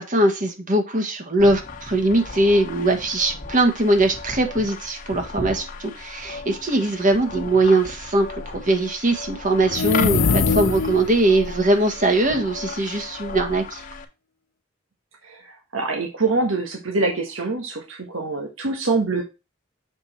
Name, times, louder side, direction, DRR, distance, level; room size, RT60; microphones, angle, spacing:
voice 1, 0.0-8.3 8.5-13.8, right 2 dB, 40° right, 5 dB, 1.8 m, -21 dB
sound 1, 1.4-14.0, left 4 dB, 45° left, 1.4 m, -36 dB
sound 2, 9.6-11.2, left 4 dB, 70° left, 0.8 m, -21 dB
voice 2, 15.3-19.2, right 3 dB, 80° right, 2 dB, 1.6 m, -25 dB
7.4 x 5.0 x 4.3 m, 0.26 s
head